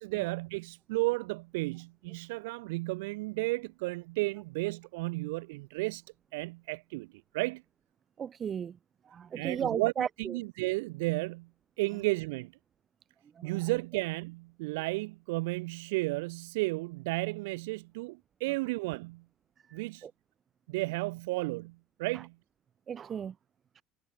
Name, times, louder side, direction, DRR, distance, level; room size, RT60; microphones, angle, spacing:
voice 1, 0.0-6.0 6.3-7.1 7.3-7.6 9.3-11.5 11.8-12.5 13.4-19.2 19.7-20.1 20.7-22.3, right 23 dB, 70° right, 0.4 m, -33 dB
voice 2, 8.2-8.8 9.0-10.3 13.3-13.6 19.7-20.1 22.1-22.2 22.9-23.3 23.7-23.8, right 8 dB, 40° right, 1.5 m, -36 dB
hypercardioid pair, 65°, 0 cm